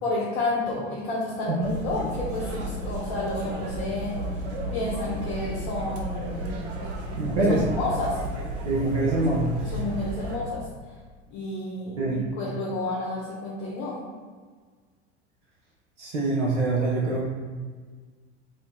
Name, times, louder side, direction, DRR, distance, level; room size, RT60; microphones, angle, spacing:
voice 1, 0.0-4.2 4.7-6.5 7.7-8.2 9.7-10.6 11.3-14.0, left 2 dB, 65° left, -6 dB, 0.9 m, -30 dB
sound 1, 1.6-10.4, right 1 dB, 40° right, 0.7 m, -33 dB
voice 2, 7.1-7.6 8.7-9.8 12.0-12.2 16.0-17.2, right 2 dB, 80° right, -5 dB, 0.7 m, -25 dB
2.7 x 2.7 x 3.5 m, 1.5 s
hypercardioid pair, 80°, 36 cm